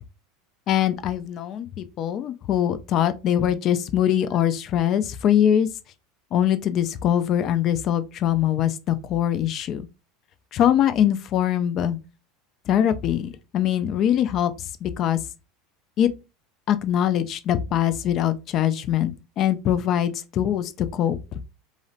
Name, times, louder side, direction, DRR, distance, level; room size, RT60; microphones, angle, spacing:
voice 1, 0.7-5.7 6.3-9.8 10.5-12.0 12.7-15.2 16.0-16.1 16.7-21.2, left 10 dB, 45° left, 0.3 m, -22 dB
2.7 x 2.1 x 2.6 m
hypercardioid pair, 90°, 0 cm